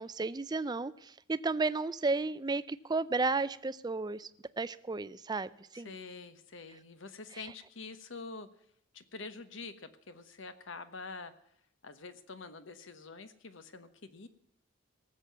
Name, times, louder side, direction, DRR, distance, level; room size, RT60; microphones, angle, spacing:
voice 1, 0.0-4.3 4.6-5.9, right 3 dB, 20° right, 15 dB, 0.4 m, -33 dB
voice 2, 5.7-8.5 8.9-11.3 11.8-14.3, left 4 dB, 65° left, 11 dB, 1.1 m, -46 dB
18.5 x 7.6 x 6.9 m, 0.76 s
head